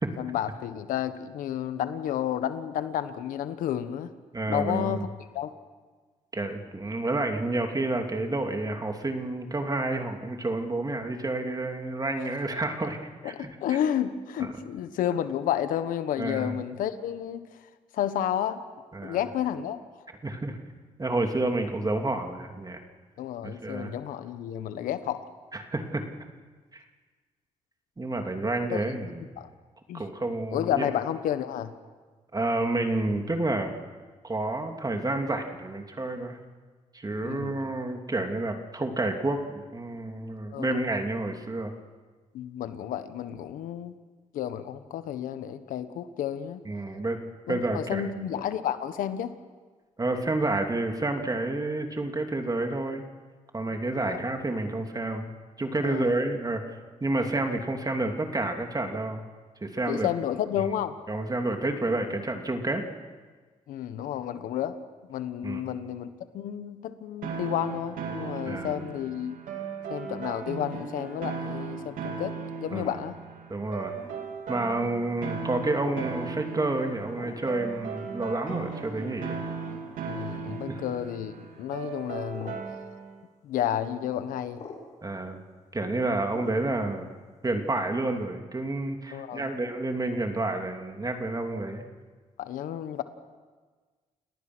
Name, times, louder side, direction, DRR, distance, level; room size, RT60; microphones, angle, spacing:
voice 1, 0.2-4.1 4.5-5.1 5.3-5.5 13.2-17.4 17.9-18.6 19.0-19.8 23.2-25.2 28.7-28.8 29.4-29.5 29.9-30.0 30.5-31.7 37.1-37.6 40.5-40.9 42.3-43.9 44.3-46.6 47.5-49.3 54.0-54.2 55.8-56.1 59.9-61.0 63.7-64.8 65.1-69.4 69.9-73.2 80.1-82.6 83.4-84.6 89.1-89.5 92.4-93.0, left 10 dB, 90° left, 11 dB, 1.3 m, -31 dB
voice 2, 4.3-5.0 6.3-13.0 13.2-13.5 14.4-14.5 16.2-16.6 18.9-19.2 20.2-20.6 21.0-22.8 23.4-23.9 25.5-26.0 26.7-26.8 28.0-29.2 29.9-30.9 32.3-33.8 34.2-36.4 36.9-41.7 46.6-47.2 47.5-48.1 50.0-53.0 53.5-55.3 55.6-59.2 59.6-60.1 61.1-62.8 65.4-65.6 68.5-68.8 72.7-73.0 73.5-73.9 74.5-79.4 80.7-80.8 85.0-85.4 85.7-87.0 87.4-91.9, right 2 dB, 30° right, 4 dB, 3.0 m, -29 dB
sound 1, 67.2-83.1, right 5 dB, 85° right, 2.7 m, -37 dB
sound 2, 73.9-74.3 75.7-76.0 77.2-77.5 78.5-78.8 79.6-79.8 80.5-80.7 81.8-82.0 82.3-82.6 83.8-84.0 84.5-84.8 86.3-86.6, left 4 dB, 55° left, 6.8 m, -44 dB
30.0 x 18.5 x 6.3 m, 1.4 s
cardioid pair, 65°, 14 cm